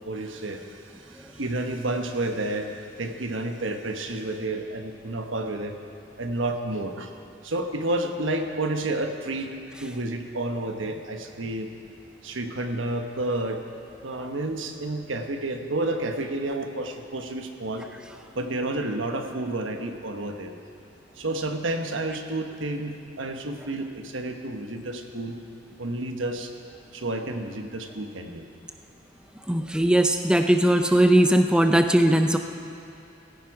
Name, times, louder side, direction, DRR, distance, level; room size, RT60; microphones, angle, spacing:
voice 1, 0.0-5.8 6.2-7.1 7.4-11.7 12.2-13.6 14.0-17.9 18.3-20.5 21.2-25.4 25.8-26.5 26.9-28.5, right 2 dB, 90° right, 5 dB, 1.2 m, -30 dB
voice 2, 29.5-32.4, right 1 dB, 5° right, 6 dB, 0.5 m, -19 dB
16.0 x 16.0 x 4.8 m, 2.6 s
head